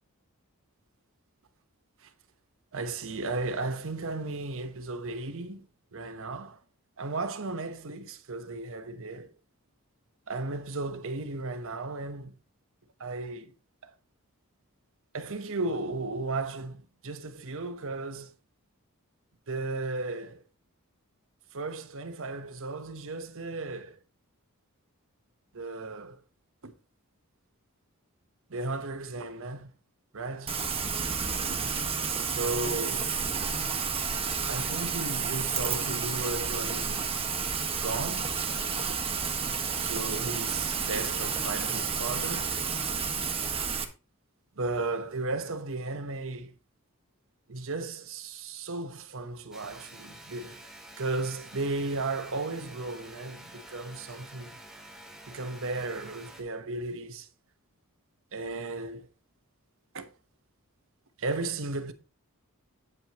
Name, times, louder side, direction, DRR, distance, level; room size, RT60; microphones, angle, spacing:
voice 1, 2.7-5.7 5.9-6.6 7.0-9.3 10.3-12.4 13.0-13.5 13.8-13.9 15.1-18.3 19.5-20.4 21.5-24.0 25.5-26.2 26.6-26.7 28.5-29.7 30.1-30.6 30.9-31.0 31.5-31.6 32.0-33.2 34.4-37.1 37.8-38.3 38.9-39.0 39.8-42.5 44.6-46.5 47.5-50.7 51.0-54.6 55.3-57.3 58.3-59.1 59.9-60.1 61.2-61.9, right 3 dB, 60° right, 1.1 m, -35 dB
Rain, 30.5-43.8, right 6 dB, 25° right, 1.3 m, -31 dB
sound 1, 49.5-56.4, right 1 dB, ahead, 2.3 m, -49 dB
9.1 x 8.9 x 3.0 m
head